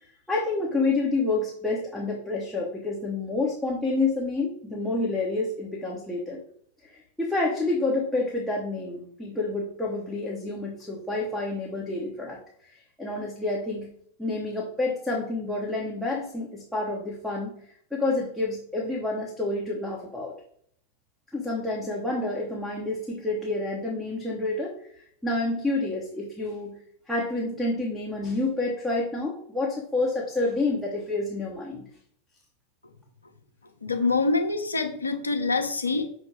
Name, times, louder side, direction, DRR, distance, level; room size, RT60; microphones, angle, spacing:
voice 1, 0.3-6.4 6.9-12.4 13.0-13.9 14.2-17.5 17.9-20.3 21.3-24.7 25.2-26.8 27.1-31.9, left 2 dB, ahead, -2 dB, 1.3 m, -28 dB
voice 2, 33.8-36.0, left 3 dB, 80° left, 5 dB, 0.8 m, -25 dB
6.5 x 3.2 x 4.9 m, 0.63 s
figure-of-eight pair, 90°, 0 cm